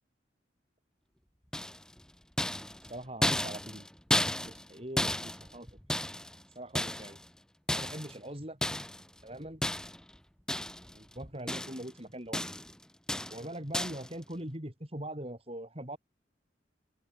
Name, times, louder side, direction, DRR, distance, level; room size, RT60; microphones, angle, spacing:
sound 1, 1.5-2.0 2.4-4.7 5.0-6.4 6.7-7.3 7.7-8.2 8.6-9.0 9.6-10.1 10.5-11.0 11.2-11.9 12.3-12.7 13.1-13.4 13.7-14.1, left 1 dB, 5° left, 0.9 m, -33 dB
voice 1, 2.9-3.9 4.4-5.7 6.5-7.2 7.7-8.6 9.2-9.6 10.9-12.5 13.3-16.0, right 1 dB, 30° right, 4.8 m, -42 dB
open air
head